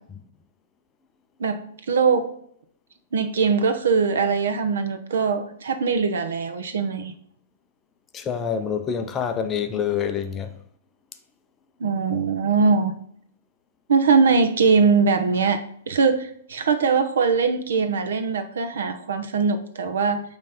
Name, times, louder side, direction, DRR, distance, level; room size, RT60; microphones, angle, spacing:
voice 1, 1.4-2.3 3.1-7.1 11.8-12.9 13.9-20.2, right 5 dB, 80° right, 1.0 m, -21 dB
voice 2, 8.1-10.5, left 7 dB, 15° left, 0.4 m, -26 dB
8.7 x 3.1 x 5.8 m
hypercardioid pair, 170°, 0 cm